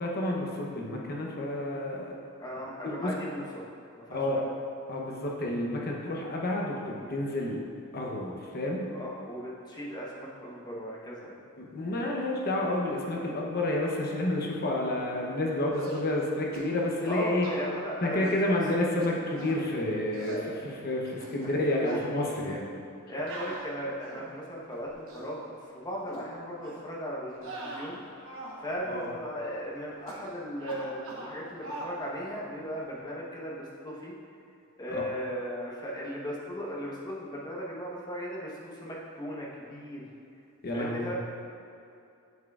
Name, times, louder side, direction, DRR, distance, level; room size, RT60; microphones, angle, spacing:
voice 1, 0.0-2.1 2.8-3.1 4.1-4.4 4.9-7.6 7.9-8.9 11.6-17.5 18.0-22.7 28.9-29.1 34.9-35.0 40.6-41.1, left 1 dB, 45° left, -1 dB, 0.8 m, -30 dB
voice 2, 2.4-3.6 4.1-4.4 8.9-11.3 17.1-18.6 21.4-22.0 22.4-22.6 23.1-25.4 25.7-28.0 28.6-34.1 34.8-40.0 40.7-41.2, equal, 20° left, -4 dB, 1.0 m, -37 dB
sound 1, 15.7-16.1 16.5-16.7 17.0-17.6 18.2-18.5 19.0-19.6 20.1-20.5 21.0-21.6 21.9-22.1 23.3-24.3 24.9-25.3 26.1-26.3 26.6-26.9 27.4-28.6 28.9-29.1 30.1-30.3 30.6-31.4 31.6-32.0, right 2 dB, 60° right, 1.1 m, -41 dB
8.0 x 7.2 x 2.4 m, 2.5 s
head